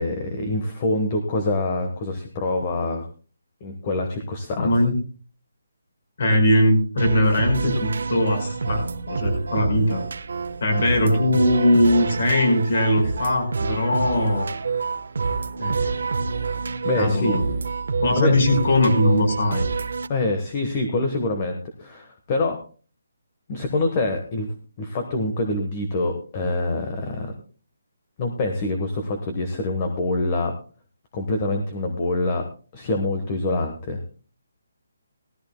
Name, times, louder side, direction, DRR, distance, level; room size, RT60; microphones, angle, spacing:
voice 1, 0.0-3.1 3.6-4.7 16.8-17.3 18.1-18.4 20.1-22.6 23.5-24.5 24.8-27.3 28.2-30.5 31.1-32.5 32.7-34.0, left 2 dB, 20° left, 5 dB, 1.2 m, -25 dB
voice 2, 4.6-4.9 6.2-10.0 10.6-14.5 15.6-15.9 17.0-17.5 18.0-19.7, left 1 dB, 40° left, 5 dB, 5.0 m, -20 dB
sound 1, 7.0-20.1, right 4 dB, 60° right, 1.1 m, -28 dB
18.5 x 14.0 x 2.2 m, 0.38 s
hypercardioid pair, 180°, 0 cm